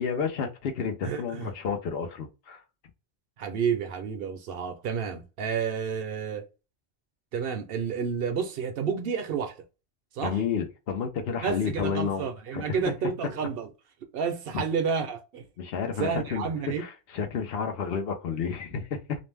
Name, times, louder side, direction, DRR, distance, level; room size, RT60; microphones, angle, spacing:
voice 1, 0.0-2.6 10.2-12.3 12.5-12.9 15.6-16.4 16.8-19.2, left 6 dB, 70° left, 0.8 m, -31 dB
voice 2, 1.0-1.5 3.4-6.5 7.3-9.5 10.1-10.4 11.4-13.7 14.1-15.5 16.0-16.8, right 6 dB, 65° right, 0.7 m, -30 dB
2.5 x 2.0 x 3.2 m
omnidirectional pair, 1.1 m